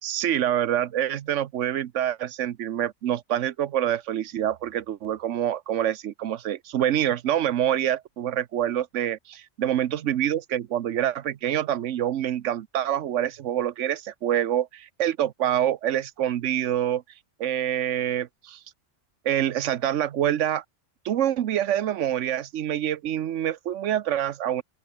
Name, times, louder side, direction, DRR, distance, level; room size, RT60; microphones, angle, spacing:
voice 1, 0.0-17.0 17.4-18.6 19.2-20.6 21.0-24.6, right 11 dB, 90° right, 1.1 m, -26 dB
open air
omnidirectional pair, 1.2 m